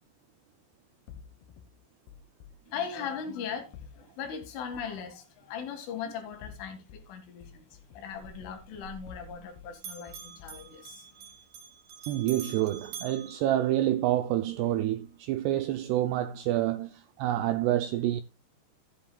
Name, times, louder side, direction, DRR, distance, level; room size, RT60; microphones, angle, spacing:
sound 1, 1.1-2.6 3.7-5.1 6.2-7.1 7.4-9.7 10.1-10.7, left 7 dB, 70° left, 2.7 m, -51 dB
voice 1, 2.7-11.3, left 7 dB, 90° left, 4.7 m, -39 dB
Bell, 8.1-9.5 9.7-14.2, right 7 dB, 60° right, 4.5 m, -46 dB
voice 2, 12.1-18.2, right 13 dB, 80° right, 2.4 m, -28 dB
14.5 x 10.0 x 2.4 m
omnidirectional pair, 5.5 m